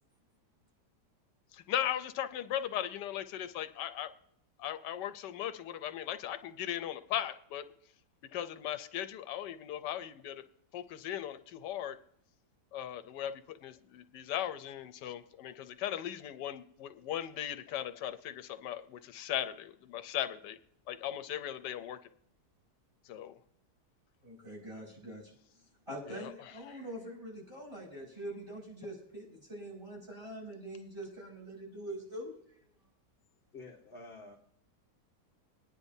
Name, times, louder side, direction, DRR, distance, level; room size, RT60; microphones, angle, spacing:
voice 1, 1.5-4.1 4.6-7.6 8.3-10.4 10.7-12.0 12.7-20.6 20.9-22.0 23.1-23.3 26.1-26.3, left 11 dB, 85° left, 11 dB, 1.3 m, -38 dB
voice 2, 24.2-25.3 25.9-32.6, right 1 dB, 15° right, -4 dB, 5.4 m, -44 dB
voice 3, 33.5-34.4, left 3 dB, 40° left, 2 dB, 1.0 m, -49 dB
21.5 x 9.9 x 2.7 m, 0.69 s
omnidirectional pair, 1.8 m